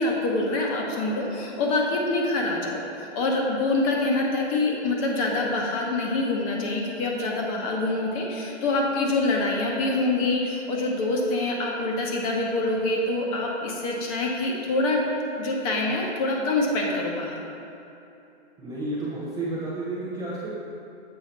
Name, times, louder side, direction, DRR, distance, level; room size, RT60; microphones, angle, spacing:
voice 1, 0.0-15.0 15.4-17.4, left 2 dB, 30° left, -1 dB, 1.0 m, -25 dB
voice 2, 18.6-20.5, right 2 dB, 10° right, -8 dB, 0.6 m, -31 dB
7.6 x 4.8 x 4.3 m, 2.9 s
hypercardioid pair, 135°, 35 cm